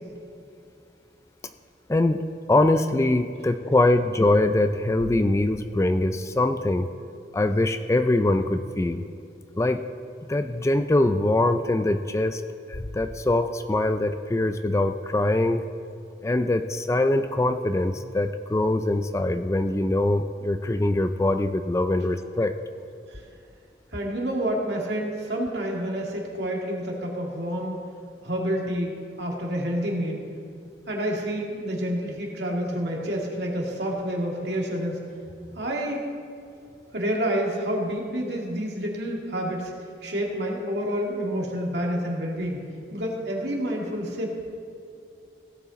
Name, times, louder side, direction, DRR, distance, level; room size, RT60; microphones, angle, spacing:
voice 1, 1.9-6.9 7.3-9.1 9.6-9.9 10.3-12.4 12.7-15.7 16.2-22.5, left 2 dB, 15° left, 9 dB, 0.3 m, -23 dB
voice 2, 23.9-27.9 28.2-30.2 30.9-35.0 35.6-36.0 36.9-39.7 40.0-44.4, equal, 70° right, -1 dB, 2.1 m, -28 dB
17.0 x 8.2 x 4.1 m, 2.5 s
head